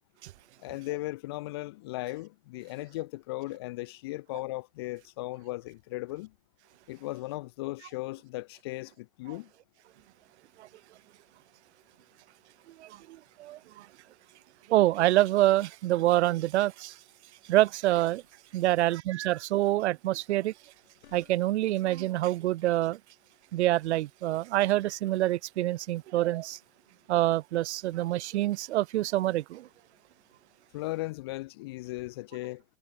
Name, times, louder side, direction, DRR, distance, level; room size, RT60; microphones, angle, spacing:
voice 1, 0.6-6.3 6.9-9.5 30.7-32.6, left 19 dB, 25° left, 0.4 m, -37 dB
voice 2, 12.8-13.9 14.7-17.0 17.5-18.2 18.5-20.5 21.1-23.0 23.5-26.6 27.1-29.7, right 15 dB, 75° right, 0.6 m, -26 dB
sound 1, 17.7-18.6 20.6-21.7, left 12 dB, 75° left, 4.8 m, -60 dB
supercardioid pair, 170°, 34 cm